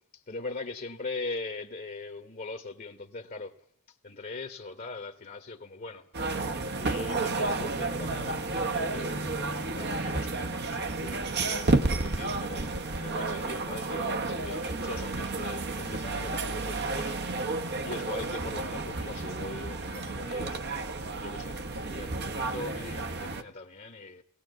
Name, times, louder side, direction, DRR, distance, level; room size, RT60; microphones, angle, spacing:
voice 1, 0.1-3.5 4.0-17.2 17.8-20.6 21.2-24.2, left 3 dB, 40° left, 1.2 m, -41 dB
sound 1, 6.1-23.4, right 3 dB, 50° right, 1.1 m, -31 dB
19.0 x 18.5 x 8.1 m
head